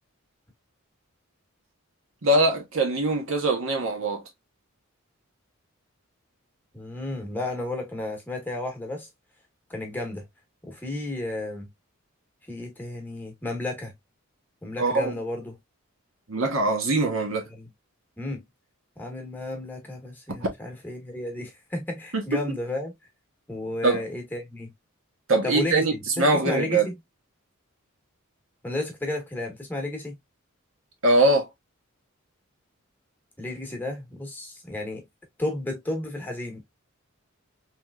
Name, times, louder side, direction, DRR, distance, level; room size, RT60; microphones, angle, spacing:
voice 1, 2.2-4.2 14.8-15.1 16.3-17.5 22.1-22.4 23.8-24.0 25.3-26.9 31.0-31.5, right 2 dB, 65° right, 0.9 m, -22 dB
voice 2, 6.7-9.1 9.7-10.3 10.6-11.7 12.5-13.9 14.6-15.6 17.5-17.7 18.2-18.4 19.0-22.9 23.5-24.7 25.4-27.0 28.6-30.2 33.4-35.0 35.4-36.6, left 2 dB, 10° left, 1.0 m, -32 dB
3.3 x 2.9 x 2.2 m
head